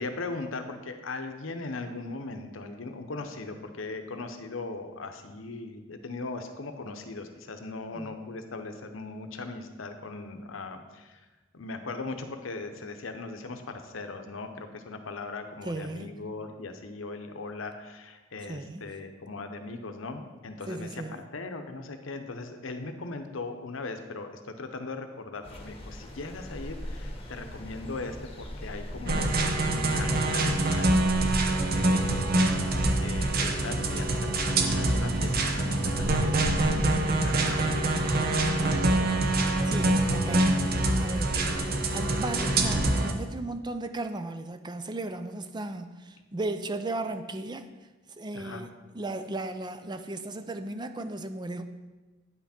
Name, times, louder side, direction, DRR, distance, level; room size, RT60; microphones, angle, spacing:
voice 1, 0.0-11.3 11.5-21.0 21.3-32.3 33.0-37.9 38.2-39.0 48.3-48.6, left 3 dB, 80° left, 7 dB, 0.8 m, -39 dB
voice 2, 15.6-16.1 18.4-18.9 20.7-21.2 38.4-39.1 39.6-40.6 40.9-47.7 48.2-51.6, right 2 dB, 20° right, 9 dB, 0.4 m, -36 dB
sound 1, 25.4-42.9, equal, 30° left, 1.1 m, -39 dB
sound 2, 29.1-43.1, right 2 dB, 50° right, 0.8 m, -25 dB
9.4 x 5.9 x 4.3 m, 1.2 s
head